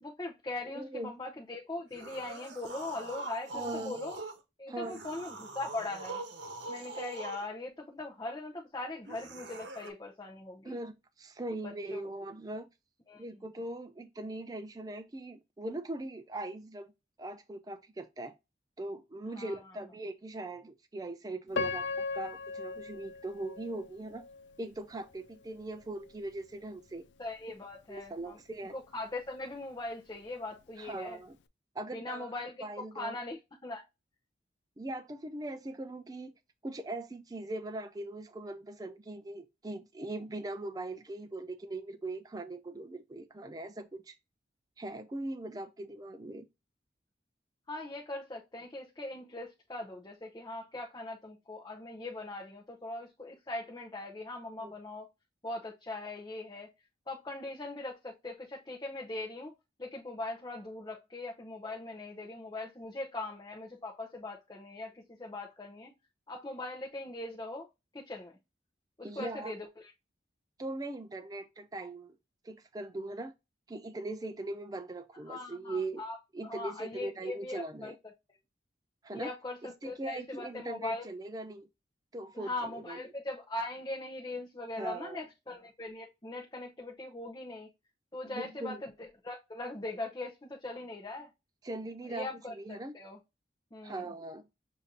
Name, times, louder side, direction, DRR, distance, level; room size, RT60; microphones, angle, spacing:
voice 1, 0.0-4.2 4.6-6.2 6.7-10.8 11.6-12.1 13.1-13.2 19.3-19.7 27.2-28.4 28.7-31.2 31.9-32.7 32.9-33.8 47.7-55.1 55.4-56.7 57.1-59.5 59.8-65.9 66.3-67.7 67.9-68.4 69.0-69.9 75.3-76.2 76.4-77.9 79.1-81.1 82.3-87.7 88.1-91.3 92.1-93.2 93.7-94.1, left 2 dB, 20° left, 0.7 m, -40 dB
voice 2, 0.7-1.1 3.5-4.0 4.7-5.0 10.7-12.7 13.2-16.9 17.2-18.3 18.8-21.9 22.1-24.3 24.6-27.0 27.9-28.7 30.8-31.4 31.7-32.3 32.6-33.2 34.8-36.3 36.6-44.1 44.8-46.5 54.5-54.7 69.0-69.5 70.6-72.2 72.4-73.3 73.7-76.0 76.3-77.9 79.0-79.3 79.6-81.7 82.1-83.0 84.7-85.2 88.3-88.8 91.6-92.9 93.8-94.4, right 2 dB, 20° right, 0.4 m, -40 dB
sound 1, 1.9-4.4 4.8-7.5 9.0-9.9, right 2 dB, 75° right, 1.0 m, -43 dB
Piano, 21.5-24.6 25.1-25.2 25.9-26.1, left 4 dB, 75° left, 0.4 m, -37 dB
6.7 x 2.6 x 2.8 m
head